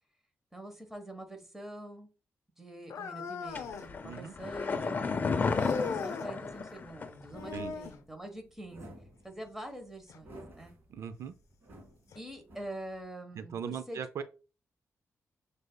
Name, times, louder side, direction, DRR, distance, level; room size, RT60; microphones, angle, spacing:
voice 1, 0.5-2.1 2.6-8.9 9.2-10.7 12.1-14.2, right 1 dB, 5° right, 1.1 m, -45 dB
sound 1, 2.9-3.9 5.6-6.3 7.3-8.0 10.1-10.2 11.0-11.1 12.1-12.2, left 5 dB, 80° left, 0.6 m, -38 dB
sound 2, 3.5-7.3 7.5-7.6, left 4 dB, 35° left, 0.5 m, -32 dB
voice 2, 4.0-4.3 7.5-7.7 10.9-11.3 13.4-14.2, right 7 dB, 70° right, 0.4 m, -39 dB
sound 3, 6.4-13.1, right 1 dB, 45° right, 2.1 m, -53 dB
6.3 x 3.3 x 2.2 m
cardioid pair, 120°, 5 cm